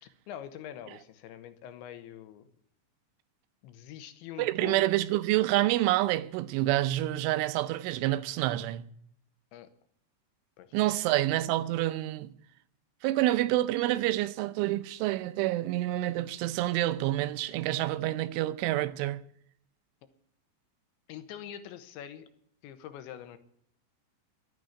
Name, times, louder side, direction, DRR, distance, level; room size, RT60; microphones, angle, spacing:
voice 1, 0.0-2.5 3.6-5.0 9.5-9.7 10.6-11.1 21.1-22.3 22.6-23.4, left 10 dB, 80° left, 3.5 m, -44 dB
voice 2, 4.4-8.8 10.7-12.3 13.0-19.2, right 16 dB, 85° right, 3.2 m, -28 dB
12.5 x 9.4 x 9.8 m
omnidirectional pair, 5.5 m